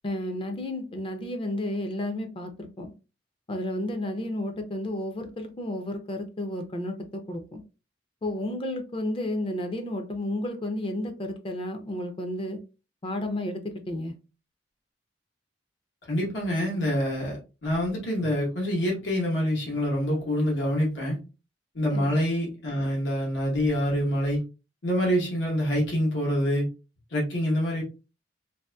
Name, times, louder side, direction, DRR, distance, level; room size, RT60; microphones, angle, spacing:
voice 1, 0.0-2.9 3.5-6.9 7.3-7.6 8.2-12.6 13.0-14.1 21.9-22.1, left 1 dB, 30° left, 6 dB, 0.4 m, -32 dB
voice 2, 16.1-21.2 21.7-24.4 24.8-26.7 27.1-27.8, equal, 85° left, -3 dB, 1.1 m, -26 dB
2.7 x 2.5 x 2.2 m, 0.31 s
head